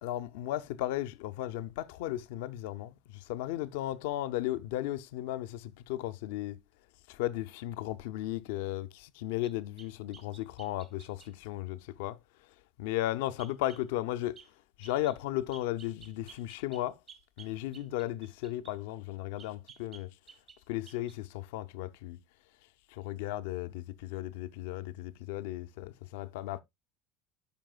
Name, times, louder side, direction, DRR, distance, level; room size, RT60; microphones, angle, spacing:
voice 1, 0.0-2.9 3.3-6.6 7.1-12.2 12.8-14.4 14.8-17.0 17.4-20.1 20.7-22.2 22.9-26.6, left 14 dB, 70° left, 0.5 m, -35 dB
sound 1, 9.4-11.3 13.4-13.9 14.4-14.5 14.8-15.2 15.5-18.8 19.4-20.6 20.9-21.2, right 7 dB, 45° right, 1.6 m, -55 dB
12.0 x 5.3 x 2.3 m
hypercardioid pair, 70°, 0 cm